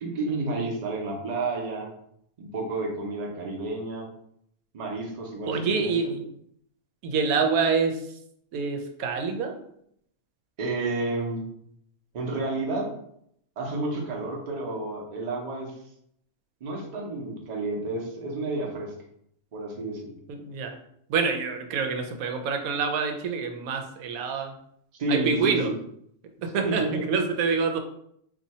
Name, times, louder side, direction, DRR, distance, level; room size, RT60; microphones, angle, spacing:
voice 1, 0.0-1.9 2.4-4.1 4.7-6.2 10.6-11.4 12.1-12.9 13.6-15.8 16.6-18.9 19.5-20.1 25.0-25.7 26.6-27.0, right 2 dB, 40° right, 0 dB, 0.6 m, -30 dB
voice 2, 5.5-6.2 7.0-8.0 8.5-9.6 20.3-20.8 21.1-24.5 25.1-25.7 26.4-27.8, right 5 dB, 85° right, 4 dB, 1.0 m, -26 dB
2.7 x 2.6 x 4.1 m, 0.72 s
omnidirectional pair, 1.4 m